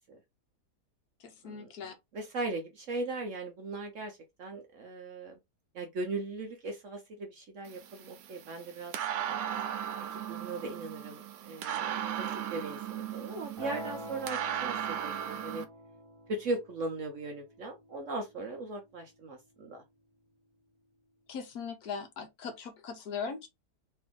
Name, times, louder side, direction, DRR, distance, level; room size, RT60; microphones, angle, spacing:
voice 1, 1.2-1.9 21.3-23.5, left 6 dB, 65° left, 1.2 m, -39 dB
voice 2, 2.1-5.3 5.7-8.9 9.3-9.6 10.3-15.6 16.3-19.8, right 2 dB, 60° right, 0.9 m, -38 dB
sound 1, 7.7-15.6, right 10 dB, 85° right, 1.3 m, -37 dB
sound 2, 13.6-19.6, equal, 25° right, 0.7 m, -47 dB
3.3 x 2.7 x 3.6 m
omnidirectional pair, 1.8 m